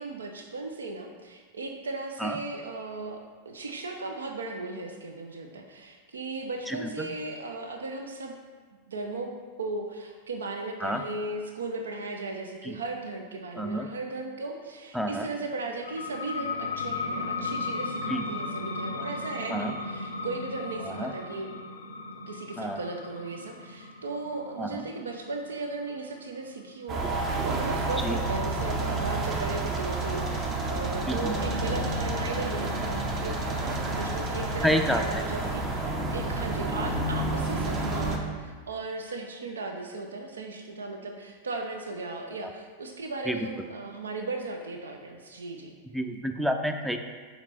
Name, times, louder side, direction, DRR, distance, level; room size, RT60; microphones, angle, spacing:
voice 1, 0.0-8.3 8.9-9.3 9.6-21.5 22.3-45.8, right 3 dB, 70° right, 3 dB, 0.5 m, -36 dB
voice 2, 6.7-7.1 10.8-11.0 12.7-12.8 13.6-13.9 14.9-15.3 18.1-18.2 19.5-19.7 21.0-21.1 22.6-22.8 24.6-24.8 28.0-28.1 31.1-31.3 34.6-35.0 43.3-43.4 45.9-47.0, equal, 5° right, 5 dB, 0.4 m, -28 dB
sound 1, 15.8-27.1, left 3 dB, 75° left, 0.5 m, -36 dB
sound 2, 26.9-38.2, right 2 dB, 30° right, 0.8 m, -30 dB
5.9 x 4.3 x 4.2 m, 1.5 s
figure-of-eight pair, 90°, 0 cm